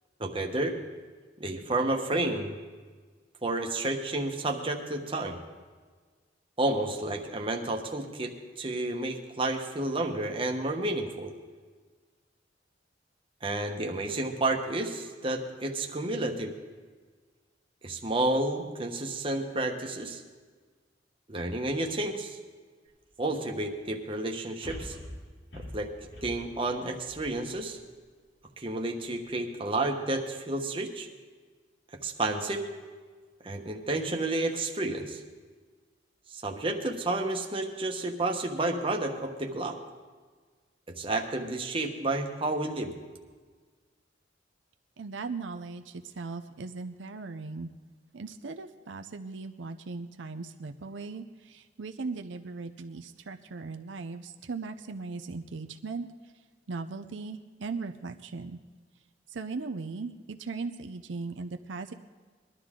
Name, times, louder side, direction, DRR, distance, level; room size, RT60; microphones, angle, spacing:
voice 1, 0.2-0.8 1.4-2.5 3.4-5.4 6.6-11.3 13.4-16.5 17.8-20.2 21.3-22.4 23.2-25.0 25.6-25.9 26.2-27.8 28.6-31.1 32.0-32.7 33.4-35.2 36.3-39.8 41.0-42.9, right 2 dB, 30° right, 2 dB, 1.2 m, -31 dB
sound 1, 22.9-23.0 24.6-27.9 28.4-28.5, left 1 dB, 80° left, 5.1 m, -44 dB
voice 2, 45.0-47.7 48.1-56.1 56.7-58.6 59.3-61.9, right 4 dB, 90° right, 7 dB, 0.6 m, -38 dB
20.5 x 12.0 x 3.7 m, 1.5 s
head